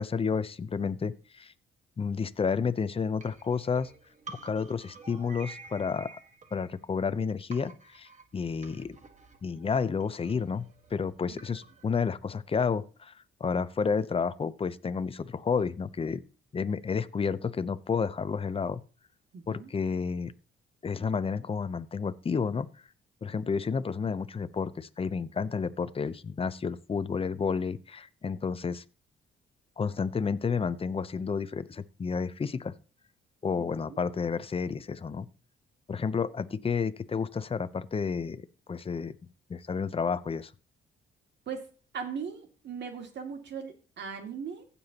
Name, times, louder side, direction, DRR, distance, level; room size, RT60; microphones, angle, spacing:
voice 1, 0.0-1.5 2.0-3.9 4.3-6.2 6.5-9.0 9.4-10.7 10.9-13.1 13.4-16.2 16.5-18.8 19.5-20.3 20.8-22.7 23.2-28.8 29.8-32.7 33.4-35.3 35.9-39.2 39.5-40.5, left 5 dB, 30° left, 15 dB, 0.7 m, -31 dB
sound 1, 3.2-7.2 7.5-11.9, right 4 dB, 40° right, 1.5 m, -50 dB
voice 2, 19.3-19.7 33.5-34.0 41.5-41.7 41.9-44.6, right 6 dB, 60° right, 4 dB, 2.4 m, -39 dB
15.5 x 7.0 x 2.9 m, 0.37 s
cardioid pair, 90°, 20 cm